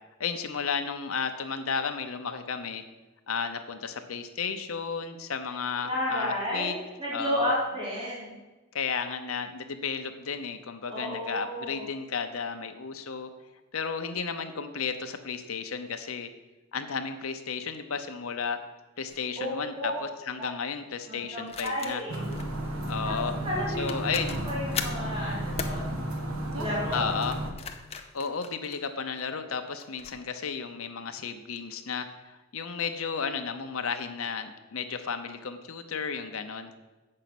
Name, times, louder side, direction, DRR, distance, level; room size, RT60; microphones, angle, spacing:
voice 1, 0.2-2.8 3.3-6.7 7.1-7.5 8.7-13.3 13.7-16.3 16.7-18.6 19.0-22.0 22.9-23.3 23.8-24.4 26.9-27.3 28.1-36.7, left 5 dB, 90° left, 7 dB, 0.8 m, -33 dB
voice 2, 5.8-8.3 10.9-11.9 19.4-20.0 21.1-22.2 23.0-23.1 23.4-24.1 24.5-26.0 26.5-27.1, left 1 dB, 25° right, -7 dB, 3.3 m, -32 dB
sound 1, 19.1-19.3 21.5-22.5 23.5-23.6 23.9-25.1 25.6-25.8 27.3-29.2 29.8-30.2, left 6 dB, 30° left, 0.7 m, -38 dB
sound 2, 22.1-27.5, right 1 dB, 90° right, 1.5 m, -33 dB
8.4 x 6.6 x 6.0 m, 1.2 s
head